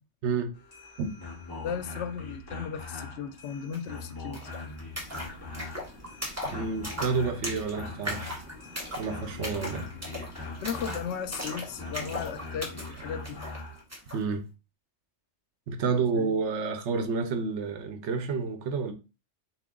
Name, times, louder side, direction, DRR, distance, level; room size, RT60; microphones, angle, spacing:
voice 1, 0.2-0.5 1.0-1.1 6.5-8.4 9.0-9.9 14.1-14.4 15.7-18.9, right 5 dB, 75° right, 0.9 m, -29 dB
sound 1, 0.5-13.8, left 3 dB, 20° left, 1.3 m, -42 dB
voice 2, 1.6-4.4 10.6-13.4 16.1-16.4, left 7 dB, 75° left, 0.8 m, -36 dB
sound 2, 3.7-3.8 4.0-14.2, equal, 15° right, 1.2 m, -39 dB
3.7 x 3.0 x 3.5 m
omnidirectional pair, 1.2 m